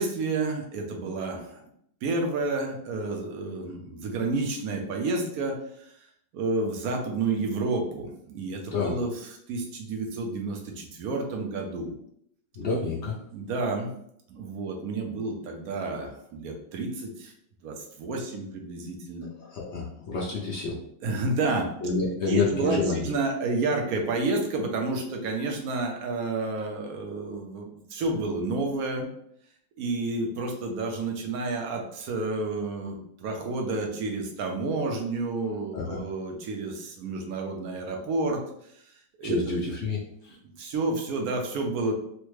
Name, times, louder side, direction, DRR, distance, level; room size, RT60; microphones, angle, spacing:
voice 1, 0.0-1.6 2.0-5.6 6.3-12.0 13.3-13.9 14.3-17.3 17.6-19.3 21.0-21.7 22.3-29.1 29.8-38.4 39.2-39.4 40.6-41.9, right 3 dB, 65° right, 2 dB, 1.0 m, -30 dB
voice 2, 12.6-13.1 19.4-20.8 21.8-23.1 35.7-36.0 39.2-40.0 40.3-40.4, left 3 dB, 65° left, -3 dB, 0.7 m, -28 dB
3.3 x 2.2 x 3.1 m, 0.70 s
omnidirectional pair, 1.8 m